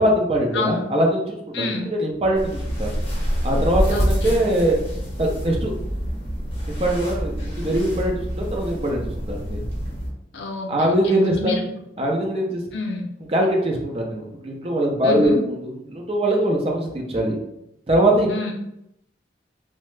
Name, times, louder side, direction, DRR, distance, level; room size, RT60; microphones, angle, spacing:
voice 1, 0.0-3.0 3.4-4.8 5.2-5.7 6.7-9.6 10.7-11.6 12.0-12.6 13.3-15.3 15.6-17.4 17.9-18.3, right 1 dB, 30° right, 0 dB, 0.5 m, -22 dB
voice 2, 1.5-1.9 3.9-4.4 10.3-11.6 12.7-13.1 15.0-15.4 18.3-18.5, left 3 dB, 70° left, 2 dB, 0.5 m, -28 dB
sound 1, 2.3-10.1, equal, 30° left, 0.8 m, -26 dB
2.7 x 2.0 x 3.1 m, 0.82 s
head